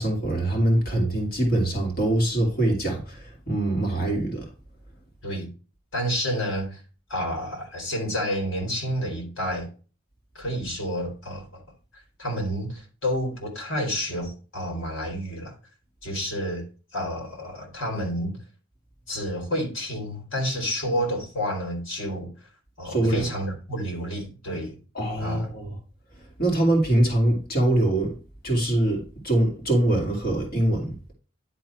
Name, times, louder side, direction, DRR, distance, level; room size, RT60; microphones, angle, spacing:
voice 1, 0.0-4.4 22.8-23.2 24.9-25.7 26.4-28.1 28.4-31.0, right 1 dB, 50° left, 2.6 m, -23 dB
voice 2, 5.9-6.8 7.1-9.7 10.3-11.6 11.9-15.5 16.0-16.6 16.9-18.4 19.1-22.3 22.8-24.7 25.2-25.5, equal, 75° left, 3.5 m, -29 dB
11.0 x 3.8 x 4.5 m
head